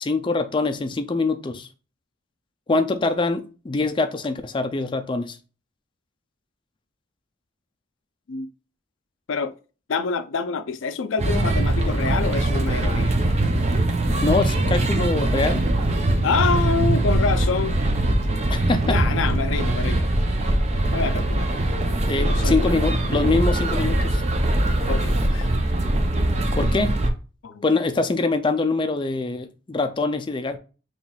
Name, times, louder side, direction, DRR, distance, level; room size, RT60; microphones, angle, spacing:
voice 1, 0.0-1.7 2.7-5.4 14.2-15.7 18.5-19.0 22.0-24.2 26.6-27.0 27.6-30.6, left 3 dB, 25° left, 0.4 m, -24 dB
voice 2, 9.9-13.2 16.2-17.8 18.8-20.1 20.9-21.5 22.2-22.8 24.9-25.5 27.4-27.6, left 5 dB, 85° left, 0.5 m, -26 dB
sound 1, 11.2-27.1, right 1 dB, 35° right, 0.6 m, -22 dB
sound 2, 19.5-25.6, equal, 60° right, 2.3 m, -39 dB
5.5 x 3.0 x 2.3 m
head